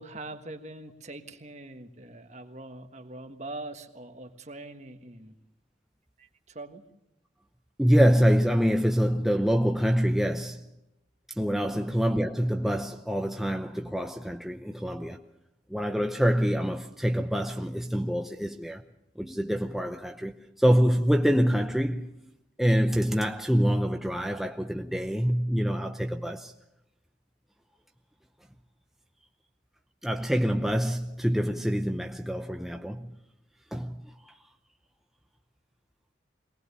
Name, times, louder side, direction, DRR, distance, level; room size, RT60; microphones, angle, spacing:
voice 1, 0.0-5.3 6.2-6.8 11.7-11.8, right 2 dB, 40° right, 1.5 m, -43 dB
voice 2, 7.8-10.6 11.4-15.2 15.7-18.8 19.2-22.1 22.6-26.5 30.0-33.1 33.7-34.3, equal, ahead, 0.7 m, -26 dB
23.0 x 19.0 x 6.8 m
head